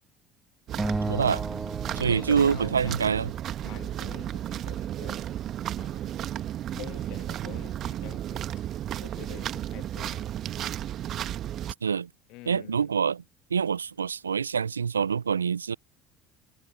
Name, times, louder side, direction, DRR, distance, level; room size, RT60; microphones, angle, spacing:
sound 1, 0.7-11.7, right 11 dB, 50° right, 1.2 m, -34 dB
Acoustic guitar, 0.8-3.2, right 2 dB, 10° right, 0.3 m, -34 dB
voice 1, 1.1-1.4 2.0-3.3 11.8-12.1 12.5-13.2 13.5-15.8, right 6 dB, 85° right, 0.4 m, -26 dB
voice 2, 1.9-3.1 3.6-5.2 5.8-6.2 6.7-8.6 9.0-10.3 12.3-12.9, left 22 dB, 65° left, 1.5 m, -46 dB
figure-of-eight pair, 60°, 0 cm